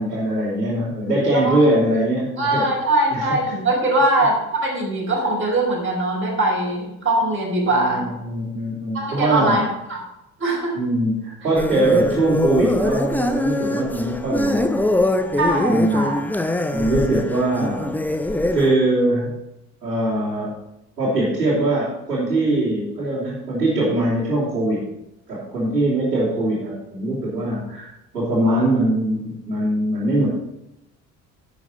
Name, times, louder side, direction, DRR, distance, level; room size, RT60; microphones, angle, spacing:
voice 1, 0.0-2.7 3.1-3.4 7.7-9.6 10.7-14.8 15.3-16.1 16.7-18.0 18.5-19.3 19.8-20.5 21.0-24.8 25.3-27.9 28.1-30.3, right 1 dB, 80° right, -10 dB, 3.5 m, -22 dB
voice 2, 2.4-8.0 8.9-10.0 10.4-10.8 15.4-16.2, right 1 dB, 25° right, -2 dB, 4.5 m, -21 dB
sound 1, 11.6-18.7, left 1 dB, 5° left, 0.7 m, -23 dB
11.0 x 8.0 x 4.5 m, 0.87 s
figure-of-eight pair, 55°, 47 cm